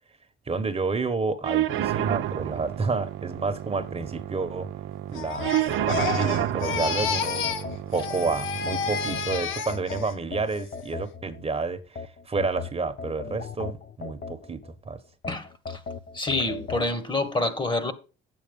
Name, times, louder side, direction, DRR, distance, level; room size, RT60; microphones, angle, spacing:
voice 1, 0.5-4.7 5.1-7.5 7.9-15.0, right 4 dB, 30° right, 1.2 m, -30 dB
sound 1, 1.4-9.4, right 12 dB, 80° right, 0.7 m, -30 dB
Crying sobbing, 5.1-7.7 7.9-10.1 10.5-10.9, left 6 dB, 85° left, 1.1 m, -31 dB
sound 2, 5.4-8.2 8.7-11.4 12.0-14.7 15.2-16.9, left 5 dB, 50° left, 0.9 m, -37 dB
voice 2, 15.3-15.8 16.1-17.9, left 2 dB, 25° left, 1.4 m, -27 dB
8.7 x 8.0 x 5.3 m
cardioid pair, 90°, 20 cm